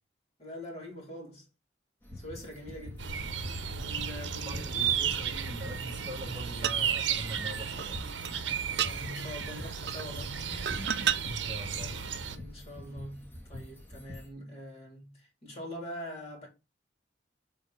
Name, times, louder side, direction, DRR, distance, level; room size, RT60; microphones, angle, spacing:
voice 1, 0.4-1.5 2.1-3.3 3.7-4.9 8.7-11.1 11.6-11.7 12.3-16.5, equal, 35° left, 3.3 m, -44 dB
sound 1, 2.0-14.3, left 1 dB, 10° left, 1.8 m, -46 dB
sound 2, 3.0-12.4, right 7 dB, 80° right, 0.9 m, -34 dB
voice 2, 4.4-8.0 11.3-12.1, right 1 dB, 25° right, 1.0 m, -42 dB
sound 3, 6.6-6.8 7.8-7.9 8.2-8.4 8.8-8.9 9.9-10.1 10.7-11.2 12.1-12.2, right 9 dB, 60° right, 0.5 m, -30 dB
8.1 x 3.5 x 4.8 m
head